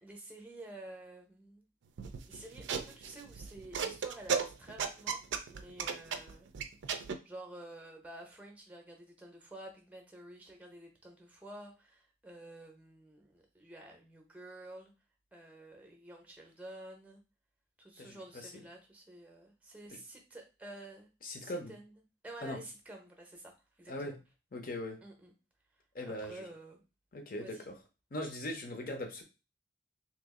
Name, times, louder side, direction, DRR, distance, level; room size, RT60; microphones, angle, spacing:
voice 1, 0.0-1.6 2.2-6.5 7.2-14.9 15.3-17.2 17.8-24.2 25.0-25.3 26.1-26.8 27.4-27.6, right 1 dB, 10° right, 2 dB, 0.7 m, -50 dB
sound 1, 2.0-7.2, right 6 dB, 80° right, 0.4 m, -36 dB
voice 2, 18.0-18.6 21.2-21.7 22.4-22.6 23.9-24.2 24.5-25.0 25.9-26.4 27.1-27.7 28.1-29.2, left 1 dB, 45° left, 3 dB, 0.7 m, -40 dB
3.0 x 2.5 x 3.6 m, 0.30 s
head